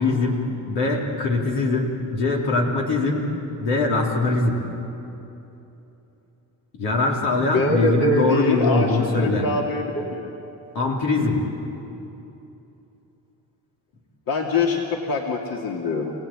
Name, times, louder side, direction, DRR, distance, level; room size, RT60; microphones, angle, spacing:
voice 1, 0.0-3.2 3.6-4.6 6.7-9.5 10.7-11.4, left 3 dB, 85° left, -1 dB, 3.9 m, -22 dB
voice 2, 7.5-10.3 14.3-16.1, left 2 dB, 60° left, 0 dB, 2.6 m, -24 dB
28.5 x 17.5 x 9.1 m, 3.0 s
cardioid pair, 95°, 40 cm